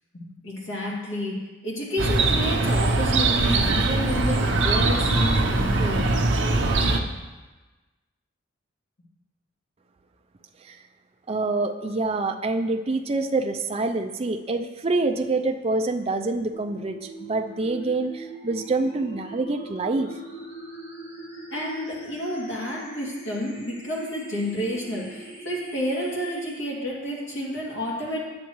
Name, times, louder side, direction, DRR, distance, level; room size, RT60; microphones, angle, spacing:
voice 1, 0.1-1.4 1.6-6.1 21.5-28.2, equal, 65° left, -5 dB, 2.5 m, -30 dB
Chirp tweet, 2.0-7.0, right 2 dB, 60° right, 0.7 m, -22 dB
voice 2, 11.3-20.1, right 3 dB, 30° right, 5 dB, 0.4 m, -26 dB
sound 1, 16.5-26.5, right 2 dB, 30° left, 3.0 m, -42 dB
10.0 x 8.6 x 3.1 m, 1.2 s
head